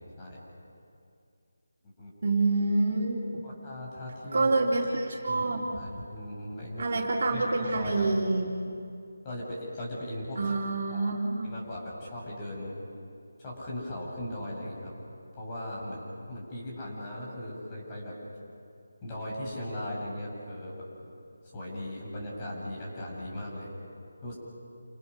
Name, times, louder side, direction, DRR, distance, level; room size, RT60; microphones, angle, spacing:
voice 1, 2.2-3.2 4.3-5.7 6.8-8.5 10.4-11.5, right 3 dB, 50° right, -1 dB, 3.7 m, -27 dB
voice 2, 3.4-4.6 5.3-8.0 9.2-10.6 10.9-11.1 11.4-12.8 13.4-14.9 15.4-18.2 19.0-20.9 21.4-23.7 24.2-24.3, left 1 dB, 20° left, -4 dB, 7.5 m, -38 dB
29.0 x 27.5 x 6.5 m, 2.4 s
figure-of-eight pair, 160°, 0 cm